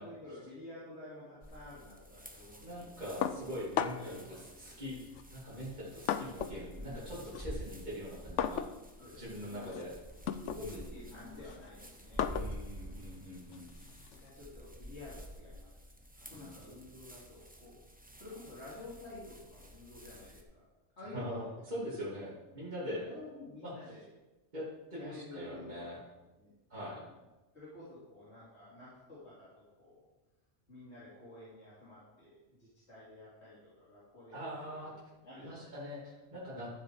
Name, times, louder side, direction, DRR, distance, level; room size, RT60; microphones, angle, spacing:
voice 1, 0.0-3.2 4.0-4.8 6.8-7.4 9.0-9.7 10.4-12.4 12.7-13.0 14.2-15.7 16.1-17.8 18.2-20.6 21.0-21.5 23.0-24.1 24.9-26.1 26.4-27.0 27.5-30.1 30.7-34.4 34.8-34.9 35.2-35.8, left 2 dB, 70° left, -9 dB, 3.2 m, -51 dB
sound 1, 1.4-20.4, equal, 10° right, 0.9 m, -50 dB
voice 2, 2.6-5.0 5.3-8.6 9.2-9.9 10.6-10.9 12.3-13.7 16.3-16.6 21.1-23.0 23.6-23.9 24.5-26.0 26.7-27.0 34.3-34.9 35.4-36.7, equal, 40° right, -8 dB, 2.8 m, -42 dB
sound 2, 3.2-4.2 5.1-6.7 7.0-14.3, left 9 dB, 90° left, 0.9 m, -38 dB
12.5 x 7.4 x 4.7 m, 1.1 s
omnidirectional pair, 1.2 m